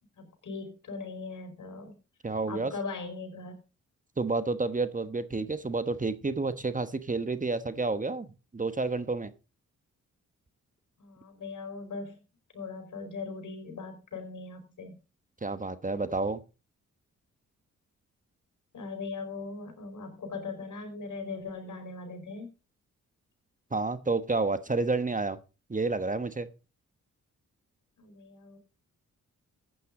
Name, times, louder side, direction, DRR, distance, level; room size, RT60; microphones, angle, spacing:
voice 1, 0.2-1.9 2.5-3.6 11.0-12.2 12.5-15.0 18.7-22.5 28.0-28.6, left 4 dB, 75° left, 5 dB, 4.8 m, -39 dB
voice 2, 2.2-2.7 4.2-9.3 15.4-16.4 23.7-25.4 25.7-26.5, right 3 dB, 25° right, 11 dB, 1.2 m, -30 dB
14.5 x 9.3 x 3.9 m, 0.31 s
cardioid pair, 70°, 31 cm